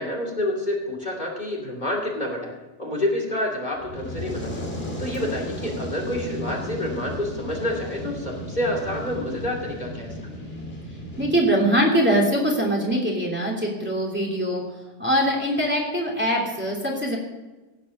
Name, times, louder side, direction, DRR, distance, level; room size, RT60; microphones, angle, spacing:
voice 1, 0.0-2.5 2.8-4.7 5.0-10.1, left 1 dB, 40° left, 0 dB, 2.8 m, -28 dB
Fire, 3.7-11.4, equal, 55° left, 2.8 m, -34 dB
voice 2, 11.2-14.6 15.0-17.2, equal, 10° right, -1 dB, 2.9 m, -22 dB
16.5 x 8.7 x 6.4 m, 1.2 s
omnidirectional pair, 1.2 m